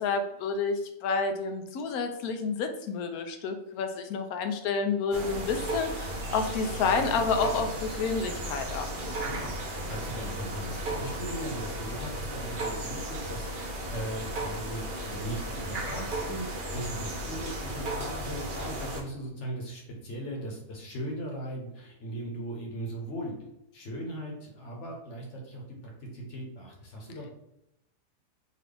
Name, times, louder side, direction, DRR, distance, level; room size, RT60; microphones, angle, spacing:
voice 1, 0.0-9.2, left 5 dB, 80° left, 6 dB, 1.1 m, -30 dB
sound 1, 5.1-19.0, right 1 dB, 45° right, 0.8 m, -35 dB
voice 2, 9.2-27.3, right 1 dB, 55° left, 0 dB, 1.3 m, -38 dB
4.1 x 2.7 x 3.3 m, 0.84 s
omnidirectional pair, 1.6 m